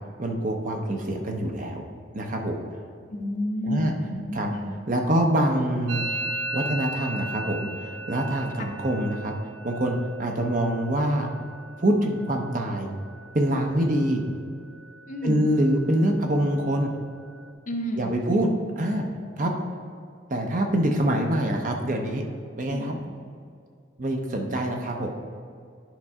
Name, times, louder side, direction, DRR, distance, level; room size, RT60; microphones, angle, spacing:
voice 1, 0.2-1.8 2.1-2.6 3.7-3.9 4.3-4.5 4.9-6.1 6.5-9.3 9.6-11.3 11.8-12.9 13.3-14.2 15.2-16.9 18.0-19.1 19.4-19.5 20.3-22.3 22.6-23.0 24.0-25.1, right 1 dB, 45° right, 2 dB, 0.8 m, -25 dB
voice 2, 3.1-4.7 8.6-8.7 13.8-13.9 15.1-15.4 17.7-18.1 19.4-19.6 22.7-23.1, left 1 dB, 40° left, 3 dB, 0.8 m, -31 dB
Musical instrument, 5.9-13.5 13.8-14.4 14.6-15.2 15.5-17.5, right 2 dB, 85° right, 0.6 m, -38 dB
10.5 x 5.3 x 3.6 m, 2.2 s
head